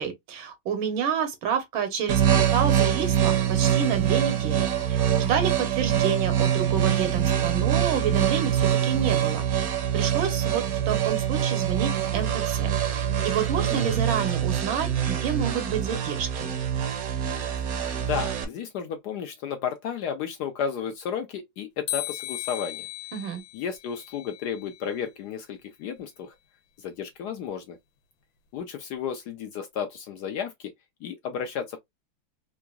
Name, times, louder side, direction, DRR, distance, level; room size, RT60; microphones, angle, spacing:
voice 1, 0.0-9.5 9.9-16.5 23.1-23.4, right 7 dB, 85° right, 1.7 m, -29 dB
sound 1, 2.1-18.4, right 10 dB, 65° right, 0.9 m, -24 dB
voice 2, 18.1-22.9 23.5-26.3 26.8-27.8 28.5-30.7 31.0-31.8, left 7 dB, 70° left, 1.0 m, -33 dB
sound 2, 21.9-25.0, left 15 dB, 90° left, 1.5 m, -36 dB
3.8 x 2.5 x 2.3 m
omnidirectional pair, 2.1 m